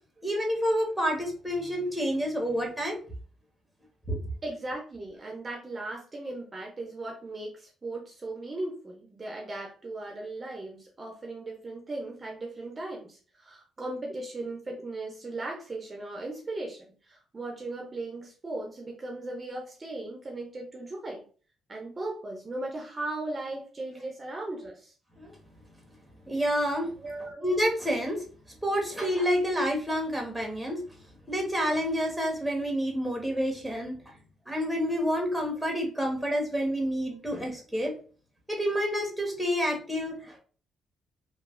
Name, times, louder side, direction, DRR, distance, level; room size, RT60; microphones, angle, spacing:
voice 1, 0.2-3.0 4.1-4.2 25.2-25.3 26.3-26.9 27.4-28.2 28.6-30.8 31.3-34.0 34.5-37.9 38.5-40.4, equal, ahead, 0 dB, 1.0 m, -28 dB
voice 2, 4.4-21.2 21.7-24.9 27.0-27.4, right 2 dB, 30° right, 0 dB, 0.6 m, -37 dB
3.1 x 2.3 x 2.4 m, 0.40 s
cardioid pair, 90°, 0 cm